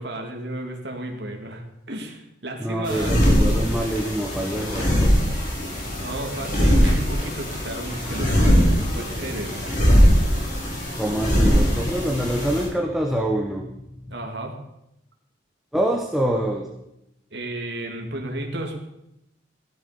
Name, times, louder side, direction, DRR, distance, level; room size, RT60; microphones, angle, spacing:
voice 1, 0.0-3.1 5.6-9.6 14.1-14.6 17.3-18.8, right 1 dB, 60° right, 2 dB, 2.6 m, -33 dB
voice 2, 2.6-5.2 10.6-14.3 15.7-16.7, right 1 dB, ahead, 1 dB, 1.0 m, -26 dB
sound 1, 2.8-12.7, equal, 40° left, 5.1 m, -21 dB
15.5 x 13.0 x 5.2 m, 0.85 s
head